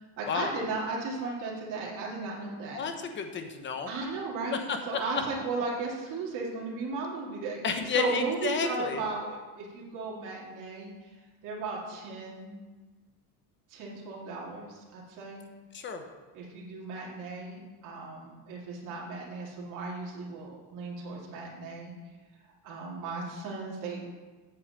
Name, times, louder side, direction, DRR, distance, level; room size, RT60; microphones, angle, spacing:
voice 1, 0.2-2.8 3.9-11.1 11.4-12.6 13.7-15.4 16.3-21.9 22.6-24.0, right 3 dB, 45° right, -4 dB, 2.2 m, -36 dB
voice 2, 2.7-3.9 4.7-5.0 7.6-9.0 15.7-16.0, left 5 dB, 25° left, 6 dB, 0.9 m, -31 dB
7.8 x 4.8 x 7.3 m, 1.3 s
cardioid pair, 145°, 43 cm